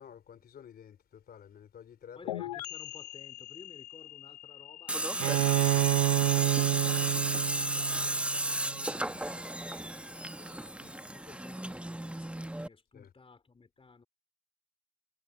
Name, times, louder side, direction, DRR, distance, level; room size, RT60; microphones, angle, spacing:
voice 1, 0.0-2.6 12.9-13.1, left 8 dB, 50° left, 3.2 m, -51 dB
voice 2, 2.2-14.1, left 4 dB, 30° left, 3.5 m, -56 dB
sound 1, 2.3-9.8, left 14 dB, 85° left, 1.3 m, -45 dB
Tools, 4.9-12.7, right 1 dB, 5° right, 1.5 m, -33 dB
Bowed string instrument, 5.2-8.8, right 27 dB, 75° right, 0.5 m, -29 dB
hypercardioid pair, 45°, 20 cm